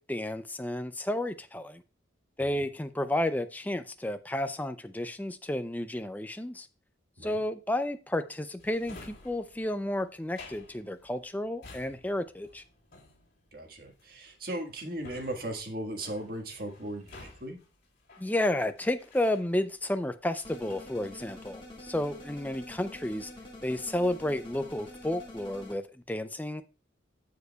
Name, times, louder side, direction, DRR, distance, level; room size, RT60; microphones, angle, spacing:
voice 1, 0.0-1.8 2.4-6.7 7.2-12.6 18.2-23.3 23.6-26.6, left 1 dB, 10° left, 0.4 m, -32 dB
Drawer open or close, 8.6-19.9 20.3-21.6 21.9-22.4, left 3 dB, 45° left, 3.3 m, -53 dB
voice 2, 13.5-17.6, right 1 dB, 50° right, 1.6 m, -37 dB
sound 1, 20.4-25.7, left 1 dB, 25° left, 1.9 m, -47 dB
14.5 x 5.0 x 2.3 m
head